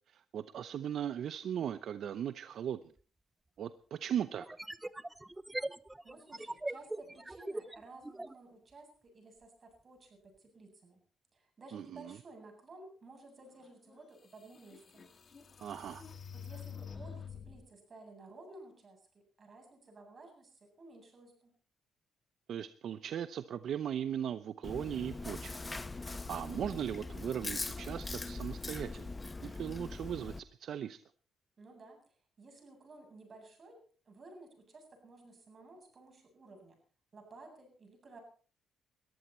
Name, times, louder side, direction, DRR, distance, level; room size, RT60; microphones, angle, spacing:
voice 1, 0.1-2.8 3.6-4.5 11.7-12.2 15.6-16.0 22.5-25.6 26.0-29.1 29.4-31.0, right 9 dB, 65° right, 13 dB, 0.7 m, -38 dB
sound 1, 3.0-3.1 4.4-8.4, right 1 dB, 10° right, 0.8 m, -41 dB
voice 2, 6.0-11.0 11.3-15.1 16.3-19.0 19.4-21.5 31.6-36.8 37.1-38.2, right 2 dB, 40° right, 3 dB, 7.9 m, -55 dB
sound 2, 13.9-14.0 14.5-17.7, left 7 dB, 45° left, 1.8 m, -47 dB
Chewing mastication, 24.6-30.4, left 3 dB, 20° left, 1.1 m, -41 dB
21.0 x 14.5 x 4.4 m, 0.42 s
cardioid pair, 90°, 0 cm